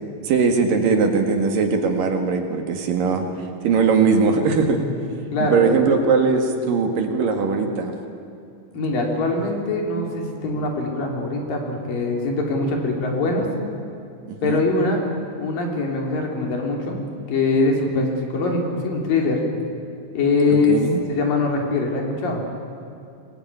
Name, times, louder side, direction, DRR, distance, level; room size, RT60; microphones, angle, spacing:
voice 1, 0.2-3.3 3.6-4.9 5.4-7.9 14.3-14.7 20.5-21.0, right 5 dB, 65° right, 4 dB, 3.4 m, -20 dB
voice 2, 5.3-5.6 8.7-13.5 14.4-15.0 15.4-17.0 17.3-19.4 20.1-20.8 21.1-22.4, left 3 dB, 65° left, 1 dB, 4.7 m, -22 dB
24.0 x 21.0 x 9.5 m, 2.6 s
omnidirectional pair, 4.4 m